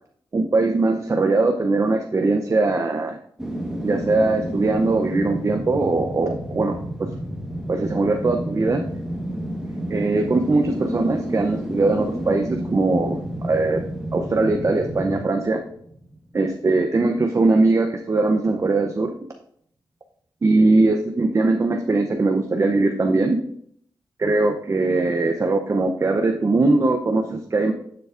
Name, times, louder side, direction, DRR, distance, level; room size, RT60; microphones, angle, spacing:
voice 1, 0.3-3.2 3.8-7.1 7.7-8.8 9.9-13.8 14.1-15.6 16.3-19.1 20.4-23.4 24.2-27.7, right 3 dB, 35° right, 4 dB, 0.7 m, -21 dB
sound 1, 3.4-16.4 16.8-16.9, right 1 dB, 5° right, 1.3 m, -30 dB
10.0 x 6.8 x 2.5 m, 0.66 s
wide cardioid pair, 90°, 8 cm